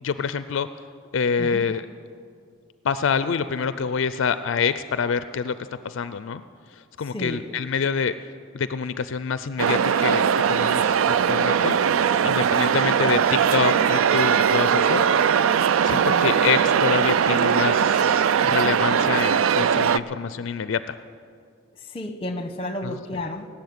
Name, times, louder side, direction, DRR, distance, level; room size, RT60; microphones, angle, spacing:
voice 1, 0.0-0.7 1.1-1.9 2.8-5.6 5.8-6.4 6.7-8.1 8.5-10.2 10.5-11.8 12.2-15.0 15.8-21.0 22.8-23.0, left 6 dB, 70° left, 13 dB, 0.4 m, -26 dB
voice 2, 1.4-1.7 7.1-7.4 15.9-16.3 21.9-23.5, left 1 dB, 25° left, 8 dB, 1.0 m, -32 dB
sound 1, 9.6-20.0, right 7 dB, 85° right, 0.4 m, -20 dB
18.0 x 7.3 x 9.5 m, 2.3 s
head